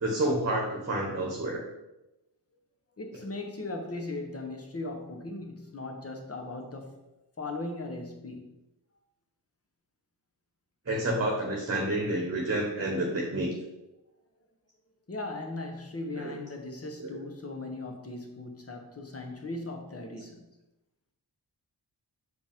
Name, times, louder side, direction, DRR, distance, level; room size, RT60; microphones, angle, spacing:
voice 1, 0.0-1.6 10.9-13.5 16.1-16.3 17.0-17.2, right 1 dB, 35° right, 1.1 m, -29 dB
voice 2, 3.0-7.0 7.4-8.6 15.1-20.5, left 2 dB, 35° left, 1.1 m, -38 dB
6.1 x 5.1 x 3.6 m
wide cardioid pair, 110°, 42 cm